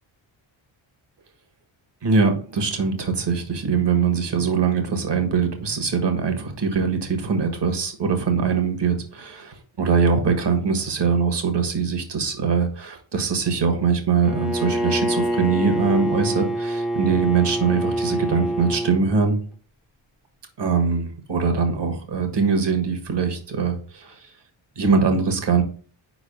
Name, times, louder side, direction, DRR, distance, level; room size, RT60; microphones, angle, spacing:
voice 1, 2.0-19.4 20.6-24.1 24.8-25.6, right 5 dB, 55° right, 6 dB, 1.6 m, -22 dB
Bowed string instrument, 14.2-19.0, right 1 dB, ahead, 0.5 m, -25 dB
4.9 x 4.0 x 5.1 m, 0.41 s
cardioid pair, 80°, 49 cm